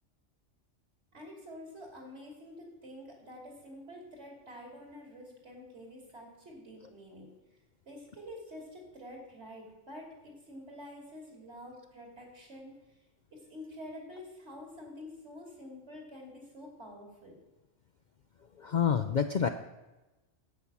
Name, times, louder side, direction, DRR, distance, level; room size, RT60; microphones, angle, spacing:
voice 1, 1.1-7.3 7.9-13.0 13.3-17.4, left 1 dB, 60° right, 0 dB, 3.1 m, -48 dB
voice 2, 18.6-19.5, left 7 dB, 55° left, 8 dB, 0.5 m, -27 dB
10.5 x 8.6 x 6.0 m, 1.1 s
omnidirectional pair, 1.3 m